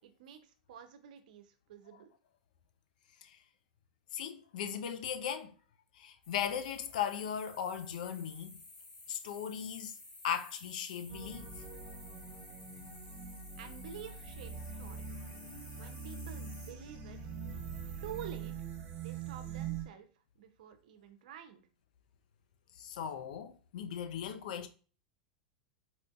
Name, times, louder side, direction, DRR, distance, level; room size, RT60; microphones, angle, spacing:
voice 1, 0.0-2.1 13.6-15.2 15.8-17.2 18.0-18.5 19.0-20.1 20.4-21.6, right 9 dB, 70° right, 0.6 m, -49 dB
voice 2, 4.1-5.5 6.0-8.6 9.1-9.9 10.2-11.5 22.8-24.7, left 8 dB, 70° left, 0.5 m, -38 dB
sound 1, 6.2-16.7, left 2 dB, 20° left, 1.2 m, -54 dB
sound 2, 11.1-19.8, right 6 dB, 40° right, 1.2 m, -43 dB
4.1 x 2.5 x 2.3 m
hypercardioid pair, 100°, 4 cm